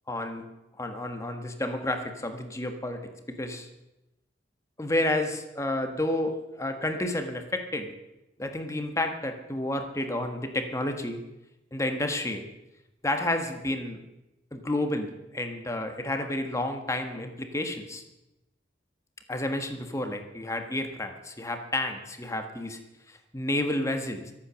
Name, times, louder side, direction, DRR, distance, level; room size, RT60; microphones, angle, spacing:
voice 1, 0.1-0.4 0.8-3.0 3.3-3.7 4.8-7.9 8.4-11.2 11.7-12.4 13.0-14.0 14.5-18.0 19.3-22.8 23.1-24.3, left 1 dB, 15° left, 5 dB, 1.5 m, -30 dB
24.0 x 8.8 x 6.4 m, 0.95 s
head